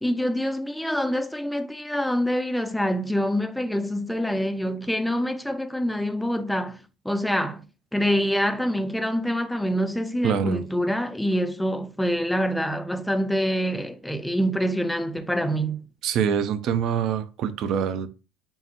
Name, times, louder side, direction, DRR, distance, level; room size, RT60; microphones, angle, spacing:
voice 1, 0.0-7.6 7.9-15.8, equal, 5° left, 0.5 m, -26 dB
voice 2, 10.2-10.6 16.0-18.1, right 8 dB, 55° right, 0.5 m, -25 dB
5.4 x 2.1 x 2.9 m
hypercardioid pair, 80°, 0 cm